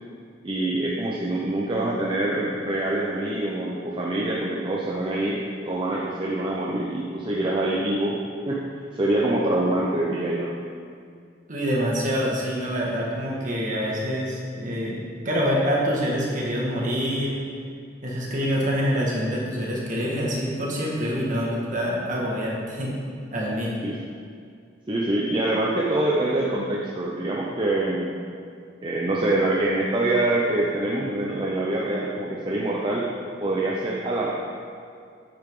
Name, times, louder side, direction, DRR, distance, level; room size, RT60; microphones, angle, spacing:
voice 1, 0.4-8.2 8.5-8.6 8.9-10.5 23.8-24.0 24.9-28.2 28.8-33.1 33.4-34.3, right 1 dB, 25° right, -4 dB, 0.8 m, -25 dB
voice 2, 11.5-15.0 15.3-17.4 18.0-22.9 23.3-23.8, equal, 40° right, -4 dB, 1.8 m, -26 dB
9.0 x 8.8 x 3.8 m, 2.3 s
head